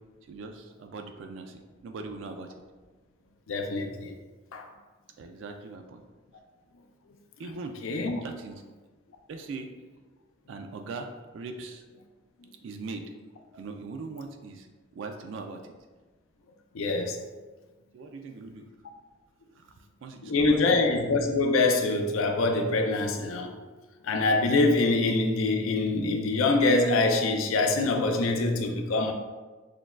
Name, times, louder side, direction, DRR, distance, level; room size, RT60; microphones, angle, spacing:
voice 1, 0.3-2.5 5.2-6.0 7.4-7.7 8.2-8.6 9.3-9.7 10.5-11.8 12.6-13.0 13.5-14.7 14.9-15.6 17.9-18.7 19.6-20.6, right 3 dB, 65° right, 0.3 m, -40 dB
voice 2, 3.5-4.1 4.5-4.6 7.8-8.2 16.7-17.2 20.2-23.6 24.0-29.1, left 3 dB, 80° left, 0.5 m, -24 dB
6.2 x 2.2 x 2.3 m
head